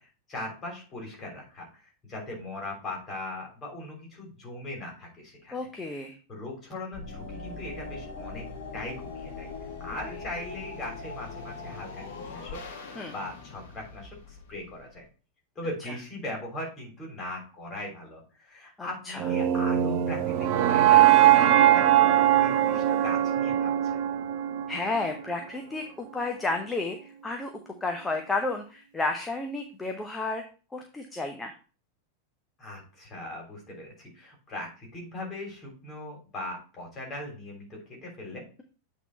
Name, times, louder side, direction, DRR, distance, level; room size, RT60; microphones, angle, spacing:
voice 1, 0.0-5.5 6.3-8.5 8.7-9.5 9.8-12.0 12.3-15.0 15.5-24.0 32.6-38.4, left 1 dB, 25° left, 0 dB, 3.3 m, -39 dB
voice 2, 5.5-6.1 13.0-13.1 15.9-16.0 18.8-19.3 24.7-27.5 27.8-30.4 30.7-31.5, left 3 dB, 10° left, 3 dB, 0.8 m, -32 dB
sound 1, 6.9-15.0, left 4 dB, 55° left, 1.4 m, -41 dB
sound 2, 19.2-25.3, right 12 dB, 45° right, 0.6 m, -21 dB
8.4 x 3.7 x 4.2 m, 0.36 s
figure-of-eight pair, 90°, 0 cm